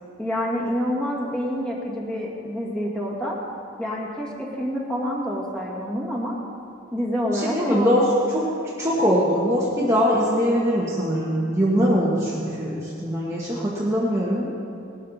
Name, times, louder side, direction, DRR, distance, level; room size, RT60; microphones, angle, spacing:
voice 1, 0.2-3.4 3.8-6.4 6.9-7.9, equal, 5° left, -4 dB, 2.2 m, -27 dB
voice 2, 7.3-8.1 8.3-8.5 8.8-14.5, equal, 15° right, -6 dB, 1.4 m, -22 dB
18.5 x 12.5 x 4.2 m, 2.6 s
head